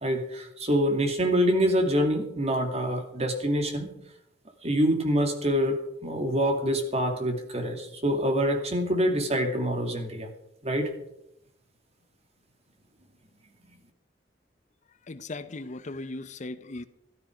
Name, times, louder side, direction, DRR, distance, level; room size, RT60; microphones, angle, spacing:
voice 1, 0.0-3.9 4.6-10.3 10.6-10.9, equal, 35° right, 5 dB, 2.4 m, -26 dB
voice 2, 15.1-16.9, left 2 dB, 45° left, 13 dB, 0.7 m, -37 dB
14.0 x 13.5 x 5.1 m, 0.80 s
head